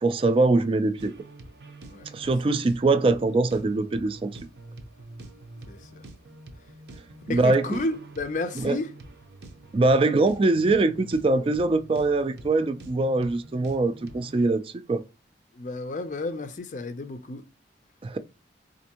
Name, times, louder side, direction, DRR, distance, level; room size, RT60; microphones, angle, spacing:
voice 1, 0.0-1.1 2.1-4.3 7.3-7.7 8.6-8.8 9.7-15.0 18.0-18.2, right 2 dB, 30° right, 0.3 m, -23 dB
sound 1, 1.0-14.5, right 2 dB, 60° right, 0.7 m, -46 dB
voice 2, 1.9-2.3 5.7-6.1 7.2-8.9 15.5-17.5, left 2 dB, 40° left, 0.4 m, -32 dB
4.3 x 2.6 x 2.8 m
head